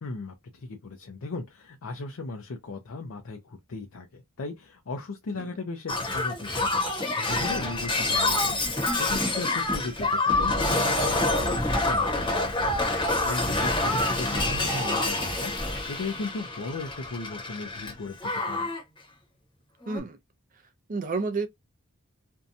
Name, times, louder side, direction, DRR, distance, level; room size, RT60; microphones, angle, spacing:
voice 1, 0.0-18.7, left 3 dB, 70° left, 0.5 m, -37 dB
Shatter, 5.9-17.9 18.2-18.8 19.8-20.0, left 2 dB, 20° left, 0.9 m, -27 dB
voice 2, 19.9-20.2 20.5-20.6 20.9-21.5, right 4 dB, 40° right, 0.5 m, -31 dB
2.6 x 2.2 x 2.6 m
head